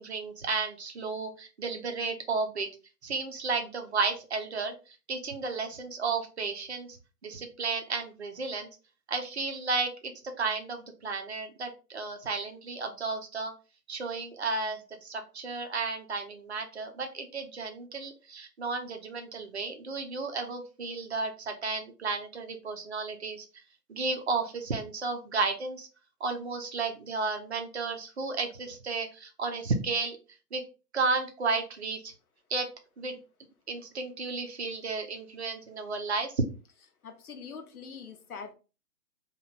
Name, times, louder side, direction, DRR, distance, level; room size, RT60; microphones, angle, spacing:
voice 1, 0.0-2.7 3.0-7.0 7.2-8.7 9.1-10.1 10.4-13.5 13.9-23.5 23.9-25.9 26.2-30.2 30.5-30.6 30.9-32.1 32.5-32.7 33.0-33.2 33.7-36.4, right 4 dB, 40° right, 5 dB, 0.6 m, -33 dB
voice 2, 37.0-38.5, left 5 dB, 60° left, 6 dB, 0.8 m, -43 dB
2.9 x 2.4 x 3.9 m, 0.33 s
figure-of-eight pair, 140°, 50 cm